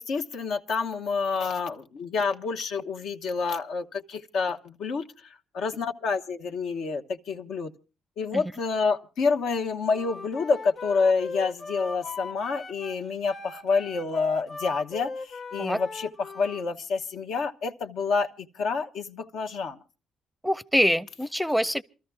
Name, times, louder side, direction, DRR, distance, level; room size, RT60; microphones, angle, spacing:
voice 1, 0.0-7.7 8.2-19.8, left 4 dB, 75° left, 1.1 m, -28 dB
Wind instrument woodwind instrument, 9.9-16.7, left 3 dB, 45° left, 1.4 m, -39 dB
voice 2, 20.4-21.8, equal, ahead, 0.6 m, -25 dB
28.5 x 13.5 x 2.2 m
cardioid pair, 90°, 0 cm